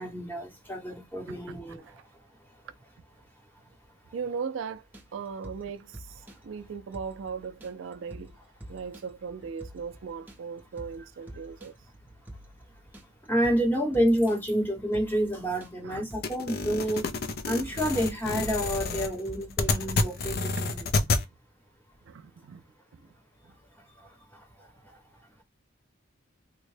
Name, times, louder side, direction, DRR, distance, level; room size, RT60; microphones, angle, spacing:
voice 1, 0.0-1.8 13.3-17.1 17.4-20.9 24.0-25.0, equal, 10° left, 1.0 m, -29 dB
voice 2, 4.1-4.9 5.1-8.4 8.7-11.8 15.8-16.1 19.6-19.8 21.0-21.1 22.1-22.6 22.9-23.0, right 6 dB, 70° right, 0.4 m, -38 dB
sound 1, 4.7-21.0, equal, 10° right, 0.6 m, -48 dB
sound 2, 16.2-21.2, left 3 dB, 50° left, 0.5 m, -29 dB
3.6 x 2.1 x 3.2 m
head